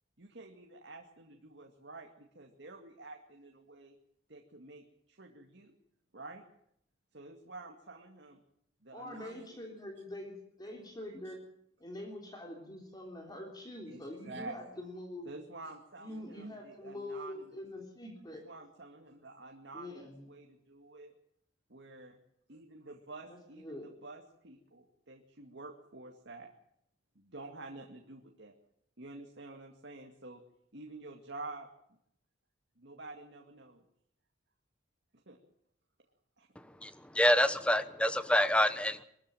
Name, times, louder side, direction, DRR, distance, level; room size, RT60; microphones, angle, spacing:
voice 1, 0.2-4.0 4.3-5.7 6.1-6.5 7.1-8.4 8.8-9.6 11.2-11.3 13.8-14.6 15.3-17.6 18.3-21.1 21.7-22.2 22.5-26.5 27.2-28.6 29.0-30.4 30.7-31.7 32.8-33.8 35.3-35.4 36.4-36.5, right 2 dB, 65° right, 2 dB, 2.2 m, -49 dB
voice 2, 8.9-10.3 10.6-11.4 11.8-15.4 16.0-18.4 19.7-20.3 23.3-23.9, left 1 dB, 20° left, 1 dB, 3.4 m, -44 dB
voice 3, 36.5-39.0, left 1 dB, 5° left, 11 dB, 1.2 m, -27 dB
23.0 x 14.0 x 9.1 m, 0.72 s
head